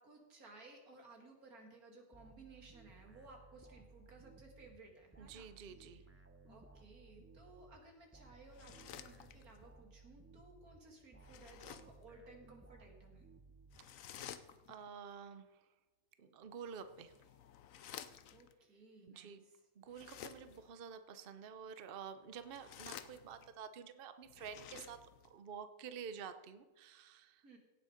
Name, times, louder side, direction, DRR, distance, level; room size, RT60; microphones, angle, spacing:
voice 1, 0.0-5.5 5.8-6.2 6.5-13.3 18.3-19.6 27.4-27.6, right 2 dB, 85° right, 2 dB, 2.8 m, -59 dB
sound 1, 2.1-14.3, right 3 dB, 10° right, 0.7 m, -61 dB
voice 2, 5.2-6.0 14.7-15.5 16.2-17.1 19.1-19.4 19.8-25.0 25.3-27.6, right 7 dB, 50° right, 10 dB, 0.8 m, -50 dB
sound 2, 8.4-9.7 11.2-12.0 13.7-14.9 16.7-18.5 19.9-20.7 22.3-23.6 24.3-25.3, left 9 dB, 70° left, 1.1 m, -53 dB
17.0 x 6.6 x 5.1 m, 1.2 s
omnidirectional pair, 1.5 m